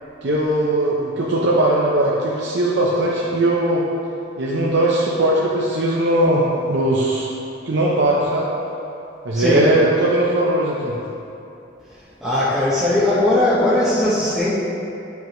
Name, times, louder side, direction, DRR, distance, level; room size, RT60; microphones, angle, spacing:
voice 1, 0.2-3.8 4.4-7.3 7.6-8.5 9.2-10.9, right 1 dB, 60° right, -5 dB, 0.7 m, -19 dB
voice 2, 9.3-9.7 12.2-14.5, left 1 dB, ahead, -12 dB, 0.9 m, -18 dB
9.2 x 5.7 x 3.0 m, 2.8 s
head